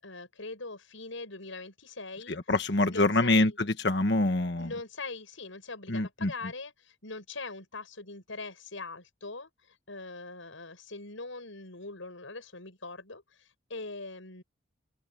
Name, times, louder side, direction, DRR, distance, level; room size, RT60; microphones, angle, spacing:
voice 1, 0.0-2.4 2.9-3.6 4.6-14.4, left 3 dB, 90° left, 7.1 m, -42 dB
voice 2, 2.3-4.7 5.9-6.3, left 2 dB, 60° left, 1.5 m, -25 dB
open air
head